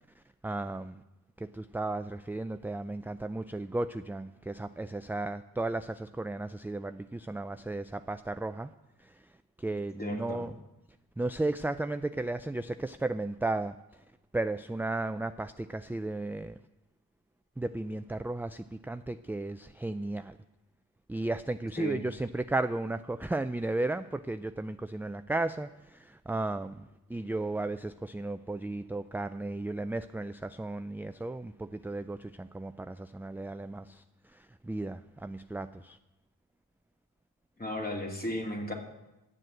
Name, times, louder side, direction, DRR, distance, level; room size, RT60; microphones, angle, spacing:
voice 1, 0.4-1.0 1.4-8.7 9.0-9.1 9.6-10.5 11.2-13.7 14.3-16.6 17.6-20.4 21.1-34.0 34.3-36.0, right 2 dB, 5° right, 10 dB, 0.3 m, -34 dB
voice 2, 10.0-10.5 21.8-22.0 37.6-38.7, left 1 dB, 25° left, 0 dB, 2.7 m, -35 dB
11.0 x 7.6 x 7.7 m, 0.96 s
cardioid pair, 65°, 37 cm